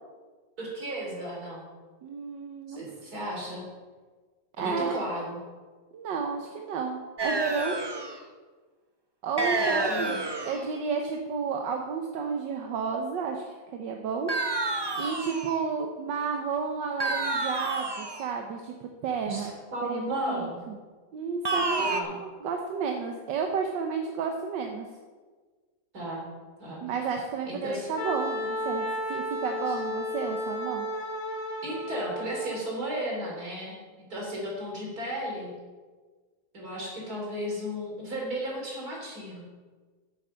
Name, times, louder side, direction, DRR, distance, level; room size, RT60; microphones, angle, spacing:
voice 1, 0.6-1.6 2.7-3.7 4.6-5.4 9.6-10.2 19.3-20.6 21.8-22.2 25.9-26.3 26.6-26.8 27.5-27.9 29.7-29.8 31.6-35.5 36.5-39.4, equal, 55° right, -2 dB, 3.9 m, -34 dB
voice 2, 2.0-2.8 4.6-5.0 5.9-7.8 9.2-13.5 13.7-14.3 15.0-19.5 19.9-20.8 21.1-24.9 26.8-30.9, right 5 dB, 80° right, 3 dB, 1.6 m, -32 dB
sound 1, 7.2-8.2 9.4-10.7 14.3-15.6 17.0-18.3 21.4-22.0, right 2 dB, 40° right, 0.3 m, -29 dB
Wind instrument woodwind instrument, 28.0-32.6, left 1 dB, 50° left, 3.1 m, -33 dB
10.0 x 8.1 x 6.8 m, 1.4 s
omnidirectional pair, 1.9 m